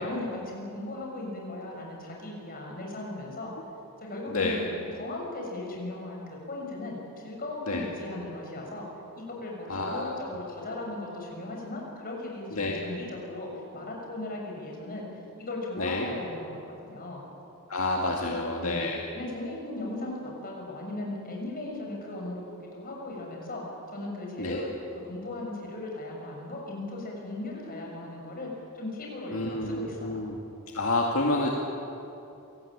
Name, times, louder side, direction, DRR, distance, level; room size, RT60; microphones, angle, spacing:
voice 1, 0.0-3.5 4.0-8.8 9.1-15.1 15.4-17.2 18.1-23.6 23.9-24.8 25.0-30.2, left 2 dB, 40° left, -1 dB, 6.6 m, -37 dB
voice 2, 9.7-10.2 12.5-12.9 15.8-16.1 17.7-19.0 24.4-24.7 29.3-30.4 30.7-31.5, left 2 dB, 70° left, -1 dB, 2.1 m, -29 dB
26.5 x 19.0 x 8.7 m, 2.8 s
head